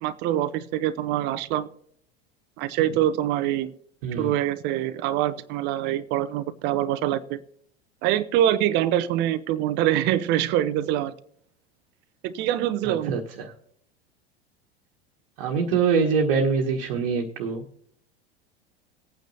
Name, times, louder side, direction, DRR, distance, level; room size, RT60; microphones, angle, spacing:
voice 1, 0.0-1.7 2.6-3.7 4.2-7.4 8.0-11.1 12.2-13.2, right 12 dB, 35° right, 12 dB, 0.6 m, -24 dB
voice 2, 12.8-13.5 15.4-17.6, right 5 dB, 50° right, 0 dB, 1.3 m, -24 dB
19.5 x 9.0 x 2.7 m, 0.68 s
figure-of-eight pair, 80°, 31 cm